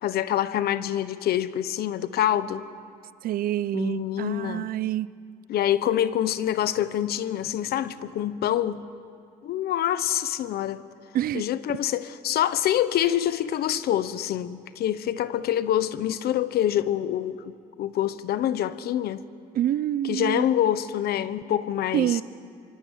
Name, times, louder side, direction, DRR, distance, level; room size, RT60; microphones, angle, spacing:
voice 1, 0.0-2.7 3.7-4.7 5.5-8.8 9.4-10.8 11.3-17.5 17.8-19.3 20.0-22.2, left 11 dB, 65° left, 14 dB, 1.2 m, -26 dB
voice 2, 3.2-5.1 11.1-11.4 19.5-20.4 21.9-22.2, right 12 dB, 60° right, 18 dB, 0.7 m, -26 dB
24.5 x 24.5 x 9.2 m, 2.3 s
cardioid pair, 110°, 17 cm